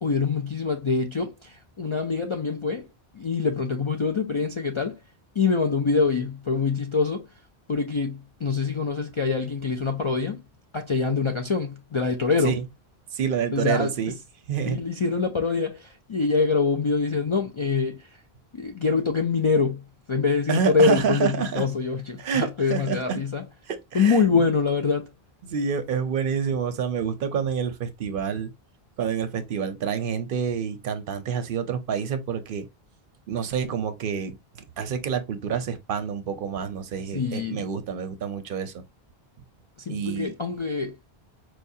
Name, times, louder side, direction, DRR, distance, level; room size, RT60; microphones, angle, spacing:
voice 1, 0.0-2.9 3.1-5.0 5.4-7.3 7.7-10.4 10.7-12.6 13.5-13.9 14.6-18.2 18.5-19.8 20.1-23.4 23.9-25.1 37.1-37.6 39.8-41.0, left 4 dB, 50° left, 0.3 m, -25 dB
voice 2, 13.1-14.1 14.5-14.8 20.5-21.6 22.2-23.2 23.7-24.5 25.4-28.5 29.0-32.7 33.3-34.4 34.8-38.8 39.9-40.3, right 7 dB, 60° right, 0.7 m, -28 dB
4.6 x 2.3 x 2.6 m
omnidirectional pair, 1.1 m